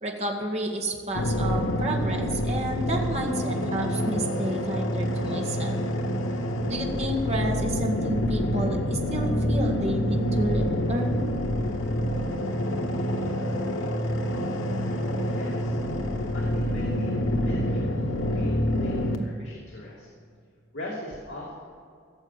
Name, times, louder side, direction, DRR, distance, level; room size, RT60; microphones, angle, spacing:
voice 1, 0.0-5.8 6.7-10.6 10.9-11.2, right 1 dB, 35° right, 0 dB, 1.8 m, -31 dB
sound 1, 1.1-19.2, equal, 90° left, 1.2 m, -27 dB
voice 2, 15.0-15.8 16.3-17.1 17.4-20.1 20.7-21.6, left 1 dB, 70° left, -5 dB, 2.5 m, -40 dB
16.5 x 7.0 x 7.3 m, 2.3 s
head